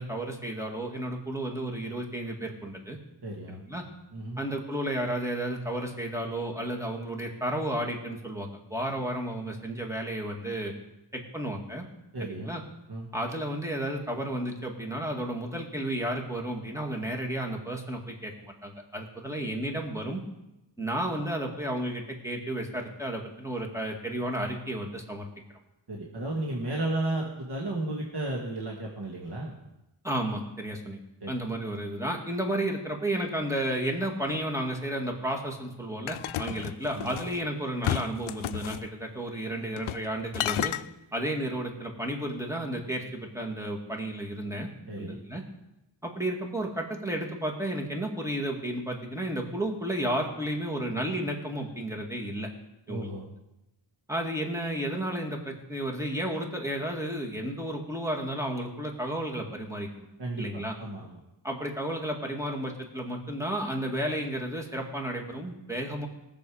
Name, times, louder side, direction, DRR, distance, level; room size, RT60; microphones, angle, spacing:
voice 1, 0.0-3.0 3.5-3.8 4.4-10.7 11.1-11.8 12.2-12.6 13.1-20.2 20.8-25.3 30.0-31.0 31.3-40.7 41.1-44.7 45.0-45.4 46.0-52.5 52.9-53.1 54.1-59.9 60.4-60.7 61.4-66.1, right 1 dB, 5° right, 1 dB, 2.0 m, -32 dB
voice 2, 3.2-3.6 4.1-4.4 12.1-12.5 12.9-13.1 25.9-29.5 31.2-31.3 36.4-36.6 36.9-37.1 44.9-45.2 52.9-53.3 60.2-61.2, right 2 dB, 55° right, -2 dB, 1.9 m, -33 dB
sound 1, 36.1-37.4 37.8-38.8 39.8-40.1 40.3-40.8, left 12 dB, 85° left, 0.5 m, -31 dB
19.0 x 6.9 x 4.9 m, 0.93 s
wide cardioid pair, 85°, 48 cm